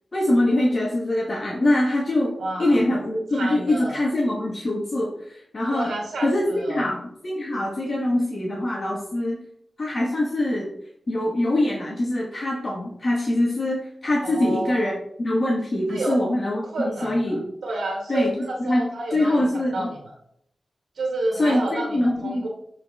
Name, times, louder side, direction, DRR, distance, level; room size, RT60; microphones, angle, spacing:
voice 1, 0.1-5.9 6.2-9.4 9.8-10.7 11.1-14.9 15.2-16.6 17.0-17.5 18.1-18.8 19.1-19.9 21.4-22.5, left 1 dB, 55° left, -3 dB, 1.7 m, -23 dB
voice 2, 2.4-2.8 3.3-4.0 5.7-6.9 14.2-15.0 15.9-16.2 16.7-20.1 20.9-22.5, right 2 dB, 90° right, -1 dB, 1.6 m, -30 dB
7.6 x 4.5 x 3.7 m, 0.71 s
cardioid pair, 50°, 0 cm